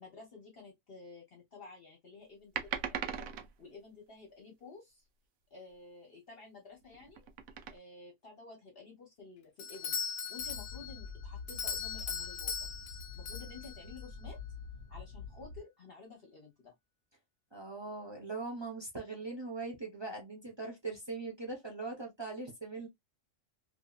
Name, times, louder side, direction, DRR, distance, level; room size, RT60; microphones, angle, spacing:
voice 1, 0.0-5.0 5.5-7.2 7.7-10.0 10.3-12.7 13.1-14.4 14.9-16.7, left 4 dB, 50° left, 1.0 m, -52 dB
sound 1, 2.5-3.5 6.8-7.8, right 8 dB, 85° right, 1.0 m, -38 dB
Doorbell, 9.6-14.1, left 6 dB, 65° left, 0.5 m, -39 dB
sound 2, 10.4-15.6, left 5 dB, 60° right, 1.5 m, -46 dB
voice 2, 17.5-22.9, right 3 dB, 25° right, 0.7 m, -41 dB
2.8 x 2.7 x 2.3 m
omnidirectional pair, 1.4 m